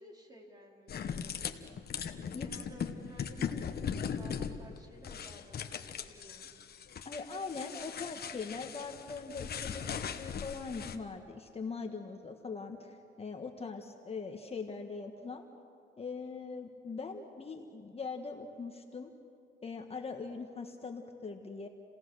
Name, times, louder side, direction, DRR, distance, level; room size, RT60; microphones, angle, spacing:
voice 1, 0.0-1.3 1.7-1.8 2.1-6.6, equal, 20° right, 0 dB, 4.3 m, -54 dB
sound 1, 0.9-11.0, left 7 dB, 50° left, 1.2 m, -39 dB
voice 2, 7.0-15.4 16.0-19.1 19.6-21.7, left 4 dB, 30° left, 3 dB, 1.5 m, -41 dB
29.5 x 17.5 x 6.4 m, 2.5 s
cardioid pair, 90°, 20 cm